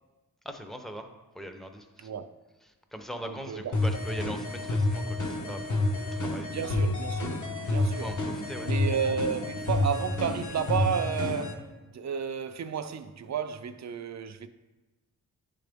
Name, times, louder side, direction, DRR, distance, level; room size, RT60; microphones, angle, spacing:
voice 1, 0.4-1.1 1.3-2.1 2.9-6.6 7.8-8.7, equal, ahead, 0.5 m, -41 dB
voice 2, 3.3-3.8 6.5-8.1 8.6-14.5, right 7 dB, 55° right, 0.4 m, -32 dB
sound 1, 3.7-11.5, left 2 dB, 60° left, 1.0 m, -29 dB
10.5 x 3.9 x 3.4 m
wide cardioid pair, 115°, 33 cm